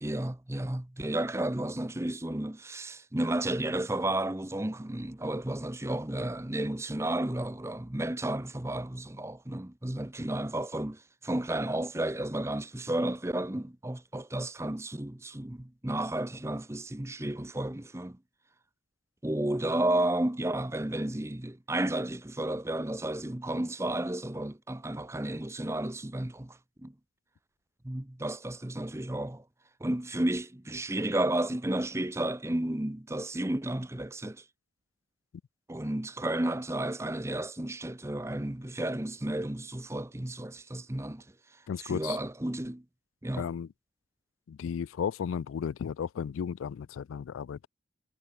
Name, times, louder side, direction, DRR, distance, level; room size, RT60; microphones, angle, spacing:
voice 1, 0.0-18.2 19.2-26.9 27.8-29.4 29.8-34.4 35.7-41.2 41.8-42.8 43.2-43.5, right 1 dB, 15° right, 0.7 m, -32 dB
voice 2, 41.7-42.2 43.4-43.7 44.5-47.7, left 7 dB, 85° left, 0.3 m, -34 dB
head